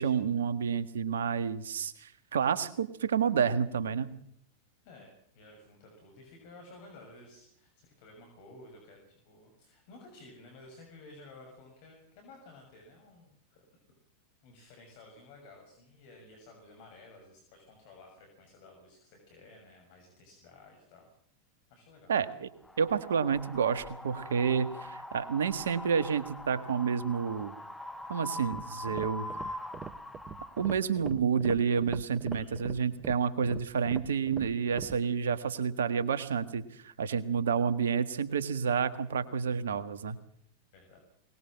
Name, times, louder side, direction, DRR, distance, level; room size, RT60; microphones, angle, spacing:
voice 1, 0.0-4.1 22.1-22.5 22.8-27.5 28.1-29.3 30.6-40.2, right 6 dB, 65° right, 13 dB, 1.6 m, -29 dB
voice 2, 4.8-13.6 14.4-21.1 21.7-22.1 32.3-32.7 40.7-41.0, left 2 dB, 50° left, 2 dB, 6.5 m, -54 dB
Wind, 22.6-30.7, left 1 dB, 5° left, 1.5 m, -43 dB
sound 1, 28.5-35.0, right 6 dB, 20° right, 0.9 m, -43 dB
22.0 x 20.0 x 7.5 m, 0.71 s
figure-of-eight pair, 90°, 0 cm